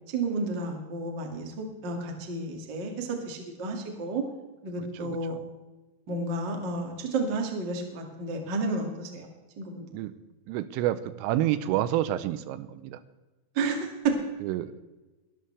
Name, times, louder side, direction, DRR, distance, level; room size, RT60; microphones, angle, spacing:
voice 1, 0.1-4.2 4.6-5.4 6.1-9.3 9.6-9.8 13.5-14.1, right 3 dB, 50° right, 2 dB, 1.3 m, -31 dB
voice 2, 5.0-5.4 9.9-10.1 10.5-13.0 14.4-14.7, right 13 dB, 85° right, 13 dB, 3.3 m, -29 dB
22.5 x 12.5 x 3.4 m, 1.1 s
omnidirectional pair, 5.8 m